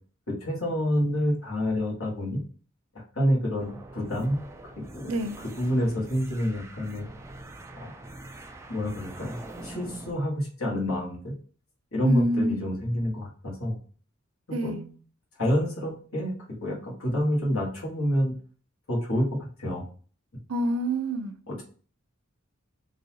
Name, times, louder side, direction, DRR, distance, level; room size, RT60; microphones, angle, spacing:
voice 1, 0.3-2.4 3.1-4.4 4.9-7.0 7.8-7.9 8.7-11.3 11.9-13.8 14.6-14.8 15.4-16.3 16.6-18.3 18.9-19.3 19.6-19.8 21.5-21.6, equal, 75° left, 1.5 m, -28 dB
sound 1, 3.6-10.1, right 2 dB, 15° right, 0.3 m, -44 dB
voice 2, 12.0-12.6 14.5-14.8 20.5-21.3, right 1 dB, 70° right, 0.5 m, -27 dB
3.9 x 2.7 x 2.8 m
head